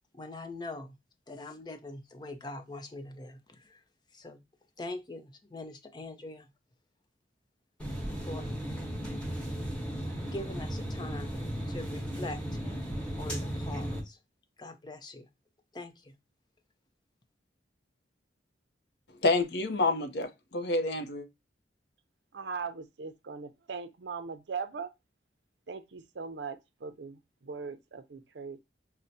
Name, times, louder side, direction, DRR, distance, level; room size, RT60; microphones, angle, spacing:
voice 1, 0.2-1.0 1.3-3.8 4.1-4.4 4.8-6.5 8.3-8.5 10.2-11.3 11.7-12.4 13.2-14.2 14.6-15.3 15.7-16.1, left 2 dB, 25° left, 0.5 m, -42 dB
sound 1, 7.8-14.0, equal, 5° left, 1.0 m, -35 dB
voice 2, 19.2-21.3, left 2 dB, 65° left, 0.6 m, -28 dB
voice 3, 22.3-24.9 25.7-28.6, right 5 dB, 80° right, 0.6 m, -40 dB
5.6 x 2.1 x 2.6 m
head